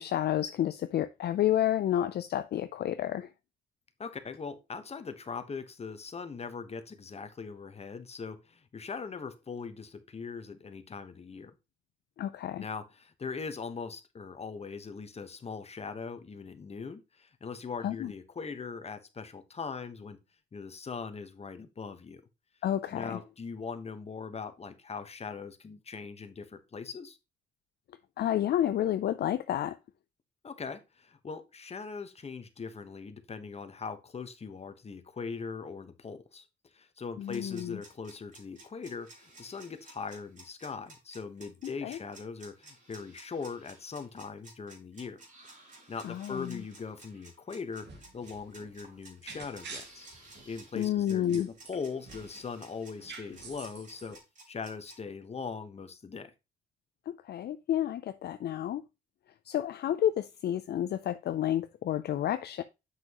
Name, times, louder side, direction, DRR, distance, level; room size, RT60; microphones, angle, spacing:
voice 1, 0.0-3.3 12.2-12.7 17.8-18.1 22.6-23.2 28.2-29.8 37.2-37.8 41.8-42.0 46.0-46.6 50.7-51.5 57.1-58.8 59.5-62.6, left 11 dB, 55° left, 0.5 m, -30 dB
voice 2, 4.0-11.5 12.6-20.2 20.5-22.2 22.9-27.2 30.4-36.5 36.7-45.2 45.9-50.1 50.4-54.2 54.5-56.3, left 5 dB, 30° left, 1.1 m, -40 dB
sound 1, 37.2-55.0, right 2 dB, 40° right, 3.4 m, -54 dB
sound 2, 47.7-52.5 52.7-54.2, right 4 dB, 60° right, 1.9 m, -48 dB
7.6 x 6.1 x 3.0 m
cardioid pair, 90°, 20 cm